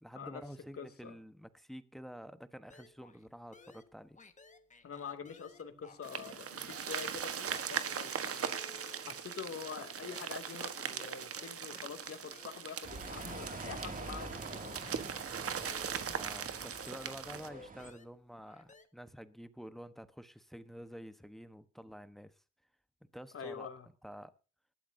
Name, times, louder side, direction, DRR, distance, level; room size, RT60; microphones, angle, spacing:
voice 1, 0.0-4.2 16.1-22.3 23.1-23.7 24.0-24.3, equal, ahead, 1.2 m, -49 dB
voice 2, 0.8-1.2 4.8-8.6 9.1-14.8 23.3-23.9, left 6 dB, 50° left, 2.6 m, -45 dB
sound 1, 2.7-3.3 3.5-6.4 6.7-15.3 15.7-18.8, left 4 dB, 25° left, 1.6 m, -58 dB
sound 2, 6.0-17.5, right 7 dB, 50° right, 1.4 m, -40 dB
sound 3, 12.8-17.9, right 3 dB, 25° right, 2.5 m, -46 dB
19.5 x 13.0 x 2.7 m
cardioid pair, 90°, 30 cm